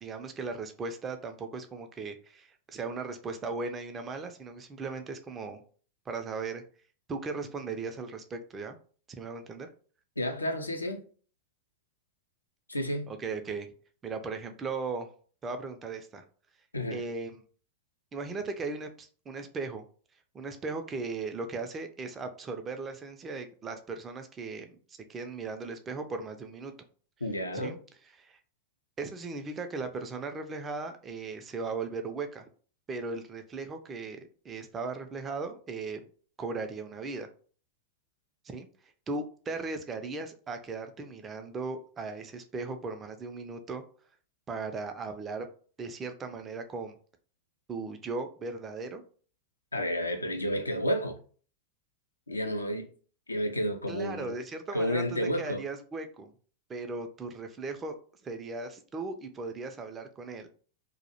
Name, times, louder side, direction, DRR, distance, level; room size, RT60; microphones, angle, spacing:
voice 1, 0.0-5.6 6.1-6.6 7.1-8.8 9.2-9.7 13.1-13.7 14.0-15.1 15.4-16.2 16.9-17.4 18.1-19.8 20.3-26.7 27.5-27.8 28.2-28.4 29.0-32.5 32.9-36.0 36.4-37.3 38.4-38.7 39.1-43.8 44.5-45.5 45.8-47.0 47.7-49.0 53.9-55.0 55.4-56.3 56.7-58.0 58.2-60.5, right 4 dB, 20° right, 0.3 m, -37 dB
voice 2, 10.2-11.0 12.7-13.1 16.7-17.0 27.2-27.8 49.7-51.2 52.3-52.9 53.3-54.3 54.7-55.6, equal, 80° left, 0.3 m, -31 dB
2.2 x 2.0 x 2.8 m
figure-of-eight pair, 90°, 0 cm